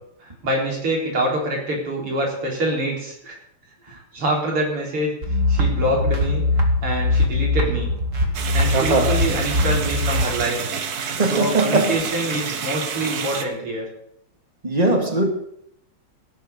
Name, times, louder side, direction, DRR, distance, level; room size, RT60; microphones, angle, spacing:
voice 1, 0.2-3.4 3.8-5.1 5.5-7.9 8.5-10.6 11.3-13.9, right 1 dB, 90° right, -1 dB, 5.1 m, -25 dB
sound 1, 5.2-10.2, left 2 dB, 35° right, 2.1 m, -21 dB
sound 2, 8.3-13.4, right 6 dB, 50° right, 1.5 m, -28 dB
voice 2, 8.7-9.2 11.1-12.1 14.6-15.3, right 2 dB, 20° right, 3 dB, 2.4 m, -20 dB
17.5 x 7.5 x 6.7 m, 0.73 s
omnidirectional pair, 2.4 m